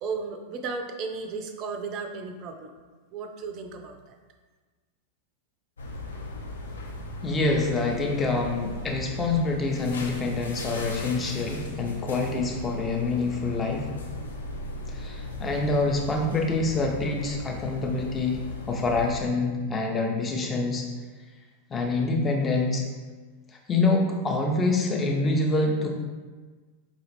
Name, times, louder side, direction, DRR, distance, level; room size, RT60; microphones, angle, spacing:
voice 1, 0.0-2.7 3.1-4.2, right 4 dB, 40° right, 6 dB, 0.4 m, -34 dB
sound 1, 5.8-19.1, left 1 dB, 70° left, 0.5 m, -37 dB
voice 2, 7.2-13.9 14.9-18.4 18.7-20.8 21.7-22.8 23.7-25.9, left 3 dB, 20° left, 1 dB, 0.6 m, -26 dB
4.9 x 2.4 x 3.1 m, 1.4 s
figure-of-eight pair, 90°, 0 cm